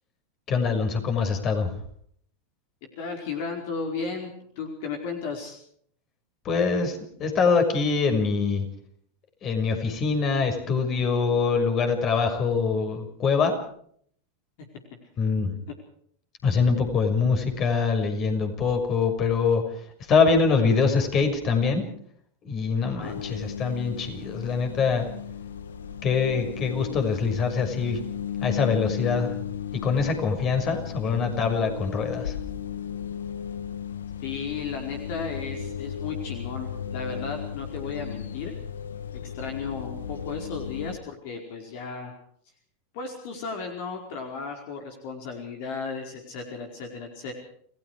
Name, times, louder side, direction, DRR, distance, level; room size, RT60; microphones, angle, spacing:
voice 1, 0.5-1.7 6.4-8.6 9.4-13.5 15.2-15.5 16.4-19.6 20.1-21.8 22.4-25.1 26.0-28.0 28.4-29.3 29.8-32.3, left 5 dB, 40° left, 6 dB, 6.2 m, -24 dB
voice 2, 3.0-4.3 4.6-5.6 15.7-15.8 22.8-23.2 34.2-38.5 39.2-42.1 42.9-47.3, left 5 dB, 60° left, 3 dB, 4.9 m, -34 dB
sound 1, 23.0-41.0, left 8 dB, 85° left, 1.5 m, -35 dB
29.5 x 18.5 x 4.9 m, 0.63 s
hypercardioid pair, 105°, 0 cm